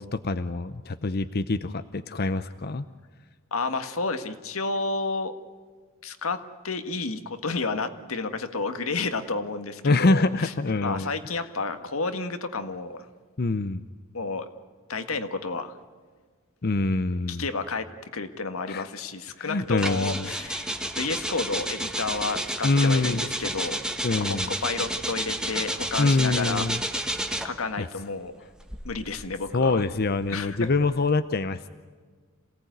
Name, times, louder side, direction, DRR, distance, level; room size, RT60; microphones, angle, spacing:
voice 1, 0.0-2.8 9.8-11.1 13.4-13.8 16.6-17.5 18.7-18.9 19.4-20.3 22.6-23.3 24.0-24.5 26.0-26.8 27.8-27.9 29.5-31.7, left 3 dB, 50° left, 12 dB, 0.7 m, -25 dB
voice 2, 3.5-5.3 6.0-10.5 10.8-13.1 14.1-14.5 14.9-15.8 17.3-17.9 18.1-23.8 24.2-26.7 27.2-28.3 28.8-29.8 30.3-30.7, left 3 dB, 85° left, 8 dB, 1.7 m, -31 dB
sound 1, 19.8-27.7 28.5-31.0, right 1 dB, 5° right, 1.4 m, -31 dB
27.0 x 17.5 x 9.4 m, 1.5 s
head